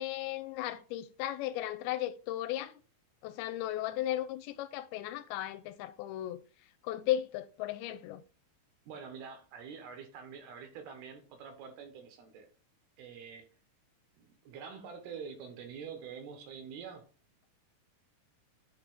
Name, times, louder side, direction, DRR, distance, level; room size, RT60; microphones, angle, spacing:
voice 1, 0.0-2.8 3.2-6.4 6.8-8.2, left 13 dB, 85° left, 2.5 m, -35 dB
voice 2, 8.9-12.5 13.0-13.5 14.2-17.0, right 6 dB, 85° right, 3.3 m, -46 dB
10.0 x 3.4 x 3.7 m
omnidirectional pair, 4.4 m